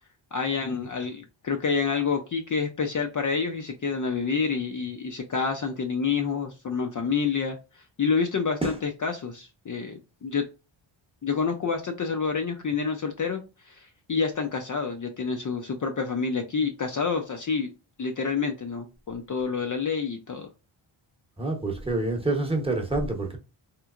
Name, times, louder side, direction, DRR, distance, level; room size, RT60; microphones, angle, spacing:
voice 1, 0.3-7.6 8.0-10.5 11.2-17.7 18.0-20.5, left 5 dB, 40° left, 0.5 m, -28 dB
voice 2, 21.4-23.4, right 2 dB, 10° right, 0.9 m, -27 dB
3.3 x 3.0 x 2.4 m
cardioid pair, 85°, 50 cm